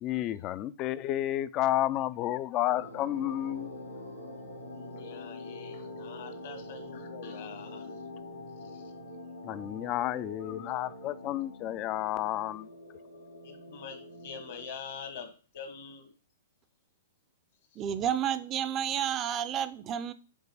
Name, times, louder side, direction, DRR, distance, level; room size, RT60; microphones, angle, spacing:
voice 1, 0.0-3.7 9.4-12.7, left 13 dB, 30° left, 0.4 m, -31 dB
sound 1, 2.7-14.7, left 1 dB, 90° left, 1.3 m, -44 dB
voice 2, 4.7-8.1 8.6-8.9 13.4-16.1, left 6 dB, 55° left, 1.3 m, -45 dB
voice 3, 17.8-20.1, right 9 dB, 25° right, 0.5 m, -30 dB
5.3 x 3.9 x 4.7 m
figure-of-eight pair, 110°, 0 cm